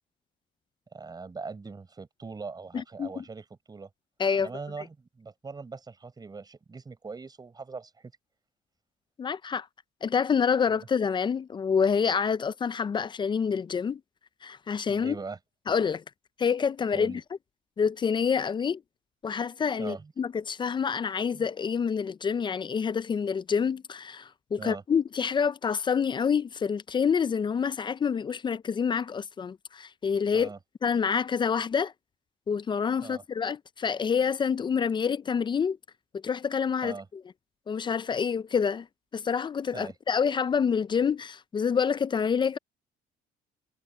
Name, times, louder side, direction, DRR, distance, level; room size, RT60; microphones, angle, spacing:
voice 1, 0.9-3.9 4.4-8.1 14.9-15.4 16.9-17.2 19.8-20.1 21.3-21.5 24.6-24.8 30.3-30.6 33.0-33.2 36.8-37.1 39.7-39.9, right 4 dB, 25° right, 4.8 m, -41 dB
voice 2, 2.7-3.2 4.2-4.5 9.2-9.7 10.0-14.0 14.4-15.2 15.7-16.0 16.4-17.2 17.8-18.8 19.2-30.5 30.8-31.9 32.5-35.8 36.1-37.0 37.7-38.9 39.1-42.6, left 6 dB, 30° left, 0.4 m, -27 dB
cardioid pair, 110°, 17 cm